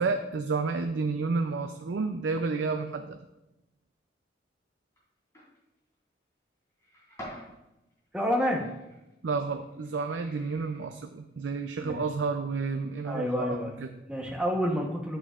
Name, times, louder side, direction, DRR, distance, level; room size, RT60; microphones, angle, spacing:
voice 1, 0.0-3.2 9.2-13.9, right 4 dB, 85° right, 6 dB, 0.4 m, -30 dB
sound 1, 5.0-5.1 5.3-5.6 6.7-7.5 7.9-11.1 11.9-12.0 12.5-12.6 12.8-13.1, equal, 15° left, 3.2 m, -48 dB
voice 2, 8.1-8.6 11.8-12.0 13.0-13.7 14.1-15.2, equal, 5° right, 0 dB, 1.0 m, -28 dB
9.9 x 7.8 x 2.4 m, 0.94 s
head